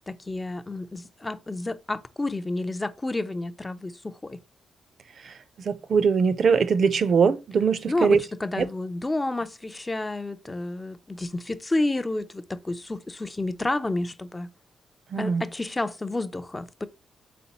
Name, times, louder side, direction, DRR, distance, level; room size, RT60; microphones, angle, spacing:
voice 1, 0.1-4.4 7.9-14.5 15.2-16.9, left 2 dB, 20° left, 0.3 m, -30 dB
voice 2, 5.6-8.2 8.6-8.7 15.1-15.4, right 5 dB, 55° right, 0.4 m, -21 dB
4.1 x 3.6 x 2.8 m
cardioid pair, 90°, 0 cm